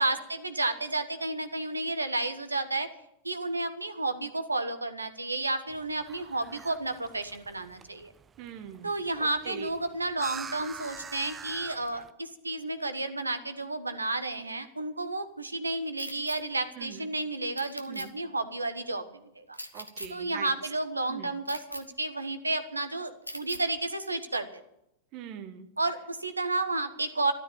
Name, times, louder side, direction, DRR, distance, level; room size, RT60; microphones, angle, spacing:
voice 1, 0.0-2.9 3.2-8.1 8.8-19.6 20.1-24.6 25.8-27.3, right 2 dB, 80° right, 10 dB, 1.3 m, -32 dB
sound 1, 5.7-12.1, right 6 dB, 20° right, 0.7 m, -45 dB
voice 2, 8.4-8.9 9.2-9.7 16.7-17.1 17.9-18.1 19.7-20.5 21.1-21.3 25.1-25.7, right 9 dB, 40° right, 9 dB, 1.7 m, -42 dB
sound 2, 16.0-16.4 17.6-18.1 19.5-20.1 21.5-21.8 23.3-23.6, equal, 90° left, 1.2 m, -40 dB
13.0 x 12.5 x 7.0 m, 0.81 s
figure-of-eight pair, 90°, 0 cm